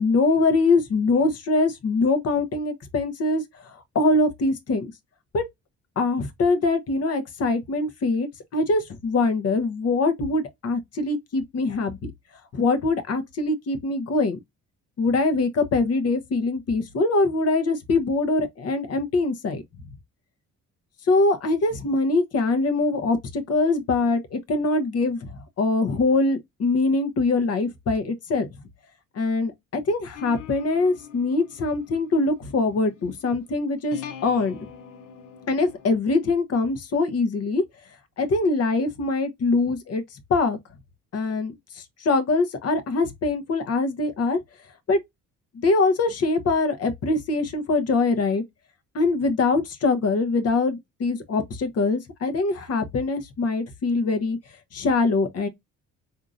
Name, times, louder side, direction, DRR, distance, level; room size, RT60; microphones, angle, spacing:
voice 1, 0.0-4.9 5.3-5.4 6.0-12.1 12.5-14.4 15.0-19.6 21.1-28.5 29.1-34.6 35.5-37.6 38.2-40.0 40.3-40.6 41.1-44.4 44.9-45.0 45.6-48.4 48.9-54.4 54.7-55.5, left 3 dB, 55° left, 0.9 m, -23 dB
sound 1, 30.1-35.9, left 8 dB, 90° left, 0.7 m, -43 dB
3.8 x 2.8 x 2.4 m
cardioid pair, 90°, 30 cm